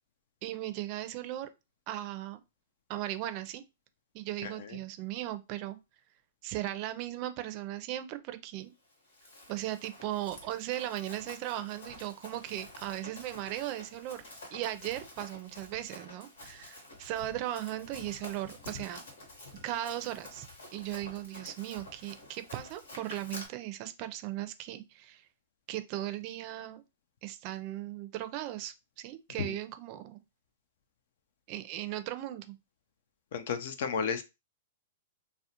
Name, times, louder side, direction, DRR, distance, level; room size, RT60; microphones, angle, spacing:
voice 1, 0.4-1.5 1.9-2.4 2.9-3.6 4.1-5.8 6.4-8.7 9.5-14.2 14.5-19.0 19.6-20.5 20.7-25.3 25.7-26.8 27.2-30.2 31.5-32.6, right 13 dB, 45° right, 0.4 m, -37 dB
Run, 8.9-23.5, left 2 dB, 80° left, 1.0 m, -49 dB
voice 2, 33.3-34.2, left 6 dB, 65° left, 0.4 m, -32 dB
2.4 x 2.1 x 2.8 m
hypercardioid pair, 120°, 0 cm